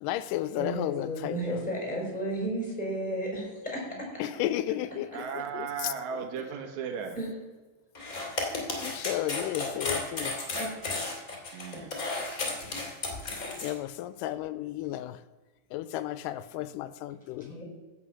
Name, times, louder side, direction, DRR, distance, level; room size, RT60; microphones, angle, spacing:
voice 1, 0.0-1.6 4.2-5.1 5.5-5.9 8.3-10.3 13.6-15.2 15.7-17.5, left 13 dB, 80° left, 2.1 m, -33 dB
voice 2, 0.5-3.8 6.4-6.5 7.1-7.3 10.6-10.7 12.9-13.3 17.4-17.6, right 1 dB, 10° left, 4.5 m, -33 dB
voice 3, 5.1-7.2 8.8-8.9 11.5-11.9, right 7 dB, 65° right, 2.3 m, -36 dB
sound 1, 7.9-13.7, left 3 dB, 30° left, 2.2 m, -33 dB
16.0 x 5.8 x 6.3 m
omnidirectional pair, 4.0 m